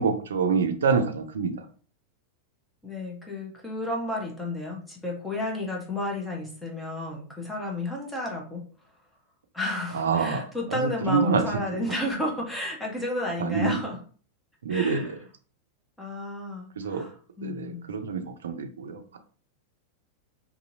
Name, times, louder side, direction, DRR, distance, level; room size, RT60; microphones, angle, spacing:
voice 1, 0.0-1.6 9.9-10.4 10.7-11.8 13.4-13.8 14.6-15.2 16.8-17.0 17.4-19.2, right 5 dB, 65° right, 7 dB, 0.4 m, -26 dB
voice 2, 2.8-8.7 9.5-14.0 14.7-15.1 16.0-17.1 17.4-18.0, left 1 dB, 5° left, -2 dB, 0.8 m, -32 dB
2.7 x 2.7 x 2.6 m, 0.42 s
figure-of-eight pair, 90°, 0 cm